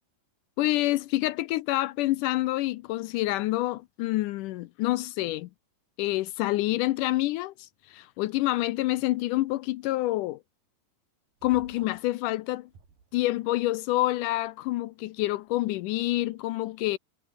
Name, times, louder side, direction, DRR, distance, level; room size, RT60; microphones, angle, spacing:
voice 1, 0.6-5.5 6.0-10.4 11.4-12.7 13.1-17.0, left 17 dB, 80° left, 2.0 m, -27 dB
sound 1, 11.4-12.1 12.7-13.6, right 5 dB, 75° right, 6.5 m, -52 dB
omnidirectional pair, 4.0 m